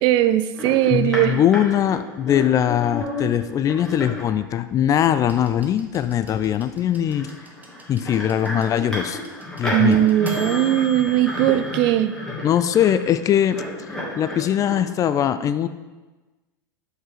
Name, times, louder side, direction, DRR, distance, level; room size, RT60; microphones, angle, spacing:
voice 1, 0.0-1.4 9.7-12.1, right 13 dB, 45° right, 12 dB, 0.4 m, -19 dB
sound 1, 0.5-4.2 5.6-5.7 6.1-6.2 6.9-14.8, left 1 dB, 5° left, 2.3 m, -32 dB
voice 2, 0.9-7.3 7.9-9.2 9.6-10.1 12.4-13.6 14.2-15.7, left 10 dB, 30° left, 12 dB, 0.4 m, -21 dB
sound 2, 5.3-13.1 14.2-14.3, left 1 dB, 15° right, 1.1 m, -43 dB
6.0 x 5.3 x 4.9 m, 1.2 s
hypercardioid pair, 90°, 12 cm